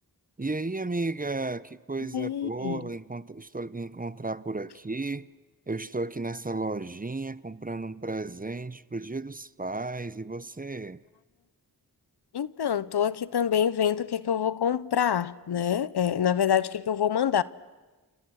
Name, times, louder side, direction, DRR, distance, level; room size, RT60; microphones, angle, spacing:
voice 1, 0.4-5.3 5.7-11.0, right 3 dB, 20° right, 0.8 m, -34 dB
voice 2, 2.1-2.9 12.3-17.4, left 9 dB, 75° left, 0.8 m, -26 dB
29.5 x 28.5 x 6.4 m
cardioid pair, 45°, 40 cm